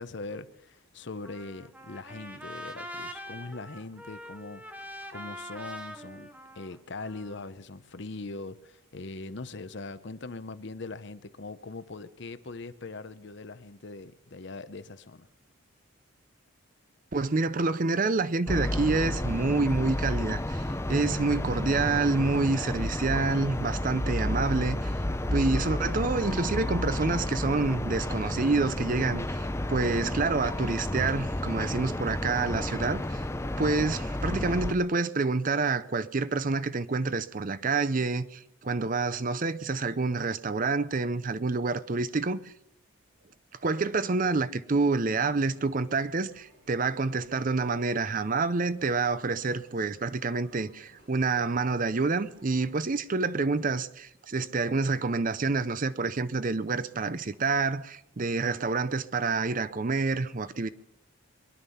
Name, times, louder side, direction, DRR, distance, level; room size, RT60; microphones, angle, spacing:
voice 1, 0.0-15.3, left 3 dB, 55° left, 0.7 m, -41 dB
Trumpet, 1.2-7.5, equal, 5° right, 0.9 m, -43 dB
voice 2, 17.1-24.9 25.3-29.4 29.7-33.2 33.6-42.5 43.6-60.7, right 3 dB, 40° right, 0.6 m, -28 dB
sound 1, 18.5-34.7, left 1 dB, 15° left, 0.6 m, -31 dB
sound 2, 45.1-52.8, right 1 dB, 55° right, 4.9 m, -60 dB
23.0 x 11.0 x 5.6 m
head